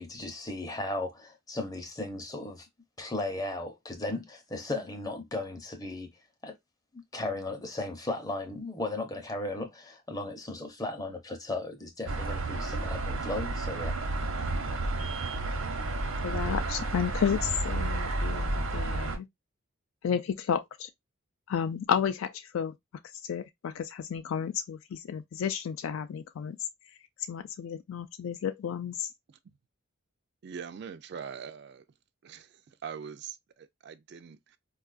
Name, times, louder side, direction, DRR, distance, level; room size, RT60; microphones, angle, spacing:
voice 1, 0.0-2.7 3.0-6.1 6.4-6.5 6.9-13.9, left 2 dB, 15° left, 0.6 m, -36 dB
sound 1, 12.1-19.2, right 2 dB, 85° right, 0.8 m, -31 dB
voice 2, 16.2-19.3 20.0-20.9 21.5-22.7 23.2-26.6 27.3-29.1, left 7 dB, 75° left, 0.3 m, -32 dB
voice 3, 30.4-31.8 32.2-34.6, right 7 dB, 50° right, 0.3 m, -43 dB
4.4 x 2.3 x 2.3 m
head